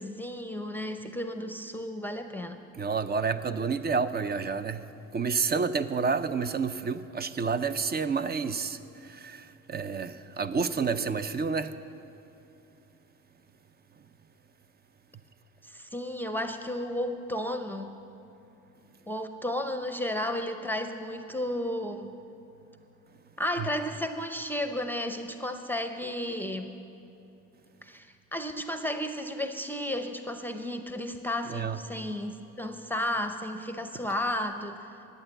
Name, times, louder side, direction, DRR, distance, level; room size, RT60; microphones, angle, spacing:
voice 1, 0.0-2.6 15.6-17.9 19.1-22.1 23.4-26.7 27.8-34.9, left 1 dB, 5° left, 7 dB, 0.6 m, -33 dB
voice 2, 2.8-11.8 23.6-23.7 31.5-31.8, right 5 dB, 35° right, 12 dB, 0.5 m, -29 dB
11.0 x 9.0 x 7.8 m, 2.9 s
cardioid pair, 90°, 30 cm